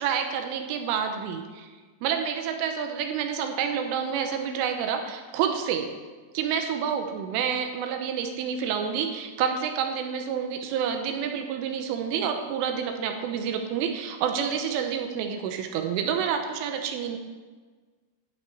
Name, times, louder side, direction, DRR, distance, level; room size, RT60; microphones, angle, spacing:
voice 1, 0.0-1.7 2.0-5.9 6.3-17.2, right 7 dB, 85° right, 5 dB, 3.3 m, -28 dB
12.0 x 6.4 x 9.1 m, 1.4 s
omnidirectional pair, 5.9 m